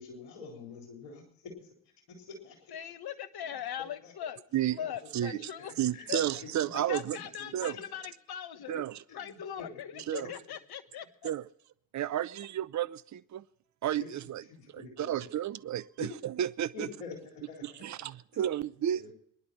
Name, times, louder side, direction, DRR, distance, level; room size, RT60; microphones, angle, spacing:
voice 1, 0.0-1.7 2.3-2.7 4.0-4.1 4.8-4.9 5.3-5.7 5.9-6.5 7.1-7.8 9.1-10.3 14.5-15.1 16.0-16.1 16.7-18.0 18.3-18.4 18.9-19.1, left 4 dB, 80° left, 4.0 m, -46 dB
voice 2, 2.7-4.4 4.7-5.7 6.1-6.2 6.7-8.8 9.1-11.3, left 9 dB, 55° left, 1.3 m, -40 dB
voice 3, 5.8-7.2 7.5-7.8 8.7-9.0 10.1-10.3 11.2-11.4 11.9-13.4 13.8-16.9 17.6-19.1, right 11 dB, 40° right, 0.7 m, -32 dB
23.5 x 11.0 x 4.2 m
hypercardioid pair, 40°, 44 cm